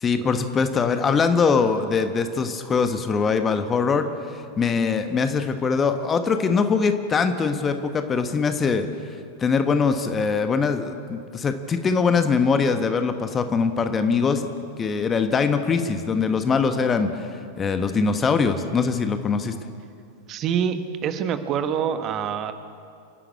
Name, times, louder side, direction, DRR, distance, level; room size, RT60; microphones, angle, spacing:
voice 1, 0.0-8.9 9.4-14.5 14.8-17.3 17.6-19.6, left 5 dB, 20° left, 8 dB, 1.3 m, -22 dB
voice 2, 20.3-20.8 21.0-22.5, right 8 dB, 35° right, 9 dB, 1.4 m, -25 dB
27.5 x 11.5 x 8.4 m, 2.4 s
figure-of-eight pair, 90°, 0 cm